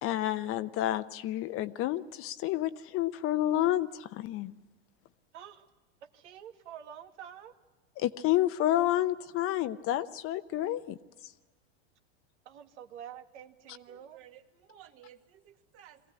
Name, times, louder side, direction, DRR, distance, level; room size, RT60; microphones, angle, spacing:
voice 1, 0.0-4.5 8.0-11.0, left 13 dB, 40° left, 13 dB, 0.8 m, -29 dB
voice 2, 5.3-5.7 6.1-7.5 12.5-14.2, right 9 dB, 80° right, 7 dB, 1.9 m, -47 dB
voice 3, 13.6-16.1, right 11 dB, 40° right, 6 dB, 2.0 m, -56 dB
23.0 x 16.5 x 9.8 m, 1.2 s
supercardioid pair, 130°, 35 cm